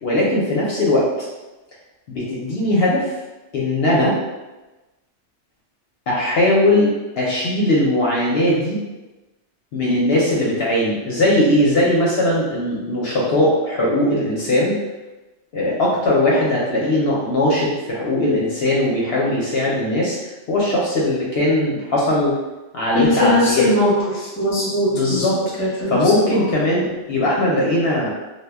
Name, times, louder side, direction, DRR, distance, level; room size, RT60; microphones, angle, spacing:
voice 1, 0.0-1.1 2.1-3.1 3.5-4.2 6.1-8.8 9.7-14.8 15.5-20.2 20.5-22.3 22.7-23.7 24.9-25.4 25.9-28.1, left 1 dB, 65° left, -5 dB, 0.7 m, -19 dB
voice 2, 22.9-25.2 25.6-26.4, left 1 dB, 15° left, -7 dB, 0.6 m, -20 dB
2.2 x 2.1 x 3.3 m, 1.1 s
omnidirectional pair, 1.2 m